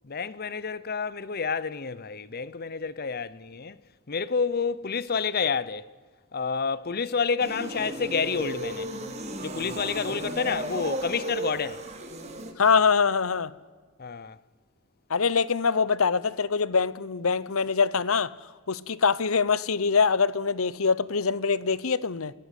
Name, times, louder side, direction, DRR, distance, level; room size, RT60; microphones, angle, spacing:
voice 1, 0.0-3.8 4.1-5.9 6.3-8.9 9.4-11.8 14.0-14.4, left 5 dB, 45° left, 0.8 m, -29 dB
sound 1, 7.4-12.5, right 1 dB, 30° right, 3.0 m, -35 dB
voice 2, 12.6-13.5 15.1-18.3 18.7-22.3, left 5 dB, 80° left, 0.8 m, -24 dB
28.0 x 17.5 x 8.3 m
head